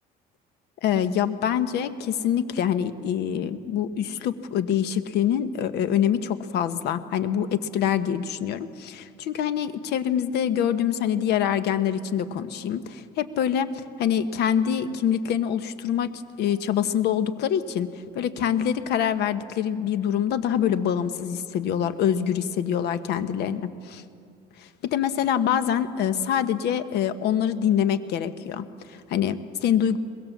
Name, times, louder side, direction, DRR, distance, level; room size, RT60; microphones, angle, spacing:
voice 1, 0.8-17.9 18.1-24.0 24.6-30.0, left 9 dB, 80° left, 12 dB, 1.2 m, -25 dB
22.5 x 21.5 x 7.3 m, 2.3 s
cardioid pair, 110°, 17 cm